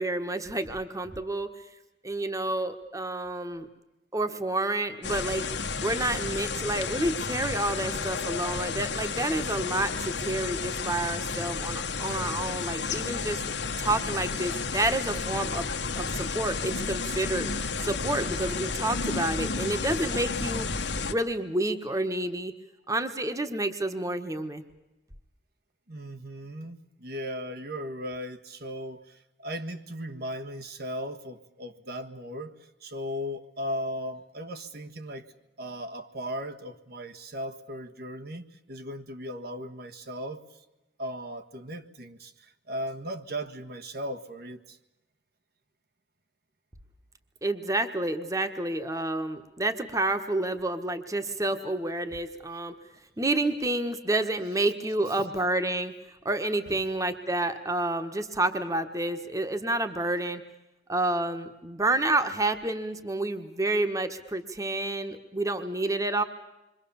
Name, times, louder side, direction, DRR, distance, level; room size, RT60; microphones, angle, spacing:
voice 1, 0.0-1.5 2.0-3.7 4.1-5.5 5.8-13.4 13.8-15.6 15.9-22.5 22.9-24.6 47.4-52.7 53.2-55.9 56.2-60.4 60.9-66.2, right 2 dB, 20° right, 8 dB, 1.4 m, -29 dB
sound 1, 5.0-21.1, left 4 dB, 75° left, 1.3 m, -32 dB
voice 2, 25.9-32.5 32.8-35.3 35.6-40.6 41.0-44.8 56.7-56.8, equal, 60° right, 7 dB, 1.6 m, -37 dB
27.5 x 24.0 x 7.1 m, 0.98 s
head